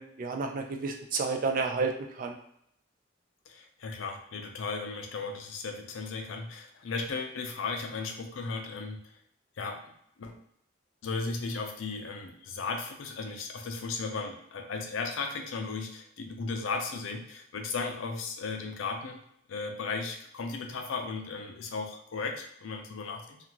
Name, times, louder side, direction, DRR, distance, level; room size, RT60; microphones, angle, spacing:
voice 1, 0.0-2.3, right 4 dB, 45° right, 4 dB, 0.4 m, -31 dB
voice 2, 3.5-9.1 9.6-9.8 10.2-10.4 11.0-19.2 19.5-23.4, left 4 dB, 80° left, 4 dB, 0.5 m, -36 dB
2.4 x 2.3 x 2.9 m, 0.72 s
head